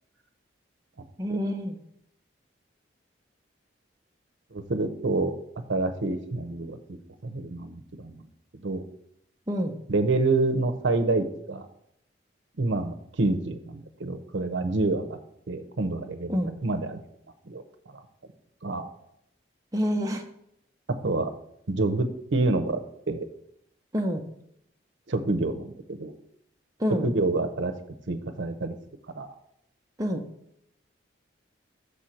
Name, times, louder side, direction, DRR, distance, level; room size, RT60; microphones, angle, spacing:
voice 1, 1.2-1.8 9.5-9.8 16.3-16.5 19.7-20.2 23.9-24.2 26.8-27.1 30.0-30.2, equal, 20° right, 2 dB, 0.6 m, -27 dB
voice 2, 4.5-5.3 5.7-7.0 7.2-8.1 8.5-8.8 9.9-11.7 12.6-15.2 15.5-17.0 17.5-17.6 17.9-18.0 18.6-18.9 20.9-21.3 21.7-22.8 23.1-23.3 25.1-26.1 27.0-27.7 28.1-28.8 29.1-29.3, right 2 dB, 75° right, 8 dB, 0.7 m, -27 dB
6.7 x 4.3 x 6.4 m, 0.74 s
head